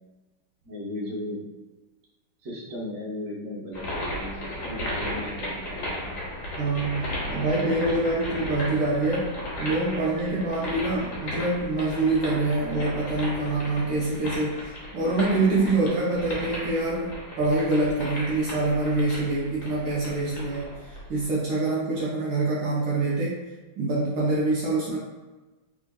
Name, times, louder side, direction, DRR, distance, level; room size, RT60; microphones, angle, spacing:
voice 1, 0.6-1.4 2.4-6.1, left 1 dB, 50° right, -5 dB, 1.1 m, -36 dB
sound 1, 3.7-21.3, equal, 60° left, 1.4 m, -35 dB
voice 2, 6.6-23.4 23.8-25.0, right 2 dB, 70° right, -6 dB, 1.3 m, -25 dB
3.4 x 3.4 x 2.2 m, 1.2 s
omnidirectional pair, 2.3 m